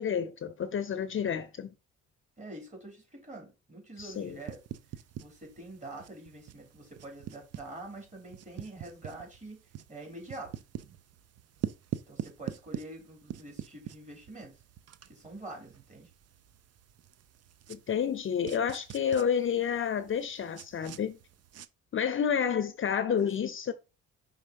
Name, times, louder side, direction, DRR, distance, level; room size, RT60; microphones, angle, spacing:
voice 1, 0.0-1.7 4.0-4.4 17.7-21.2 21.9-23.7, left 8 dB, 45° left, 0.6 m, -30 dB
voice 2, 2.4-4.6 5.2-9.6 9.9-10.5 12.1-14.6 15.1-16.1 22.4-23.3, right 2 dB, 25° right, 3.3 m, -45 dB
sound 1, 4.0-21.7, right 10 dB, 55° right, 0.6 m, -45 dB
5.4 x 3.6 x 5.1 m
cardioid pair, 90°, 30 cm